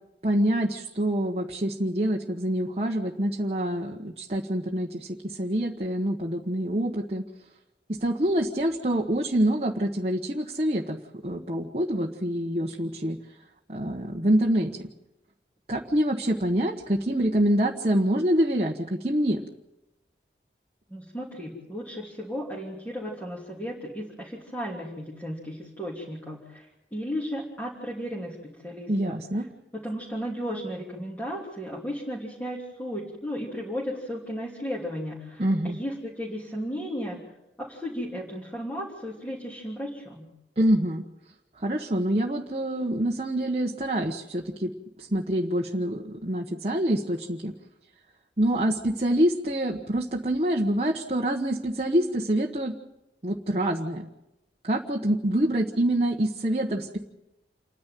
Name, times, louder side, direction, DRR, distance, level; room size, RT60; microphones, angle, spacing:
voice 1, 0.2-7.2 7.9-13.2 13.7-14.9 15.7-19.4 28.9-29.5 35.4-35.8 40.6-41.0 41.6-44.7 45.0-47.5 48.4-52.8 53.2-54.1 54.6-57.0, right 1 dB, 35° right, -1 dB, 1.2 m, -26 dB
voice 2, 20.9-26.7 26.9-29.2 29.7-37.2 37.6-40.3, equal, 10° left, -6 dB, 3.0 m, -35 dB
28.5 x 10.5 x 9.2 m, 0.91 s
head